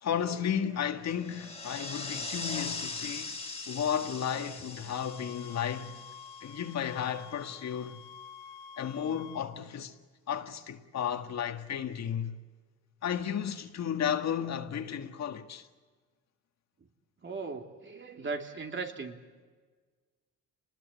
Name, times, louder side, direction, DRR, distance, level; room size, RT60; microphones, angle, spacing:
voice 1, 0.0-3.4 3.7-6.0 6.4-8.0 8.8-9.9 10.3-12.4 13.0-15.7, left 8 dB, 60° left, 1.9 m, -33 dB
sound 1, 1.1-7.0, left 3 dB, 20° left, 2.5 m, -40 dB
sound 2, 4.9-9.5, left 7 dB, 85° left, 1.6 m, -49 dB
voice 2, 17.2-19.2, right 4 dB, 40° right, 3.0 m, -38 dB
28.5 x 20.0 x 8.3 m
cardioid pair, 90°, 30 cm